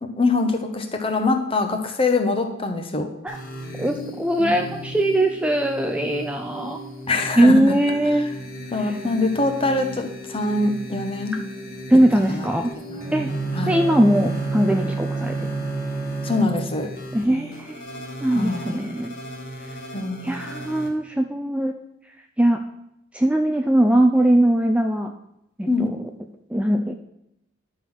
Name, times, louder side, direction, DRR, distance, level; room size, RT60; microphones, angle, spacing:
voice 1, 0.0-3.1 4.4-4.5 7.1-7.6 8.7-11.4 12.3-12.5 12.9-13.0 13.3-13.8 16.2-16.9 18.3-19.0 19.9-20.5 25.7-25.9, left 3 dB, 30° left, 5 dB, 0.9 m, -24 dB
sound 1, 3.3-20.9, equal, 50° left, 1.7 m, -37 dB
voice 2, 3.8-6.8 7.4-8.3 8.8-9.0 11.9-12.7 13.1-13.3 13.7-15.3 17.1-17.8 18.2-19.1 20.2-21.7 22.4-22.6 23.1-25.1 25.6-25.9 26.5-26.9, right 1 dB, 5° right, 4 dB, 0.4 m, -20 dB
Bowed string instrument, 12.9-17.0, right 3 dB, 20° right, 1.8 m, -28 dB
11.0 x 3.9 x 6.2 m, 0.82 s
head